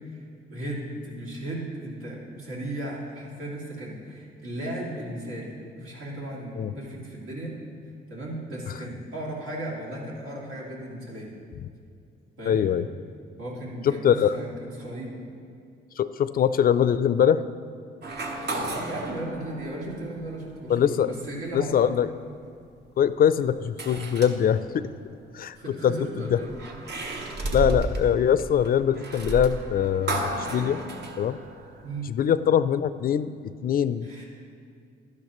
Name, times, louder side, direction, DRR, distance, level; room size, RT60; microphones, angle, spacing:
voice 1, 0.5-7.5 8.1-11.3 12.4-12.6 13.4-15.2 18.6-21.7 25.6-26.5 31.8-32.1 34.0-34.3, right 1 dB, 85° right, -4 dB, 2.5 m, -36 dB
voice 2, 12.5-12.9 13.8-14.4 16.0-17.4 20.7-21.1 21.5-22.1 23.0-24.8 25.3-25.6 25.8-26.4 27.5-30.8 31.2-31.4 32.1-33.3 33.6-34.1, left 9 dB, 50° left, 14 dB, 0.4 m, -22 dB
sound 1, 18.0-20.5 21.2-21.3 23.8-24.9 26.2-32.0, right 2 dB, 55° right, 1.1 m, -33 dB
12.0 x 10.5 x 3.0 m, 2.3 s
cardioid pair, 90°, 20 cm